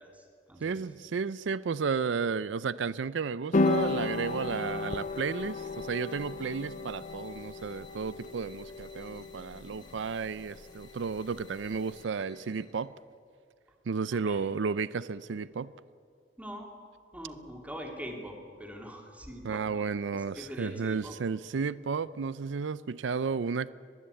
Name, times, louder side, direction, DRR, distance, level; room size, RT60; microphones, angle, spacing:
voice 1, 0.0-0.8 14.1-14.5 16.4-16.7 17.1-19.9 20.1-21.2, equal, 10° right, 2 dB, 2.8 m, -43 dB
voice 2, 0.6-12.9 13.9-15.7 19.4-23.7, right 5 dB, 90° right, 18 dB, 0.5 m, -33 dB
sound 1, 3.5-12.0, left 3 dB, 45° left, 0.7 m, -34 dB
sound 2, 3.6-12.9, left 3 dB, 25° left, 1.7 m, -57 dB
21.5 x 15.0 x 8.4 m, 2.2 s
head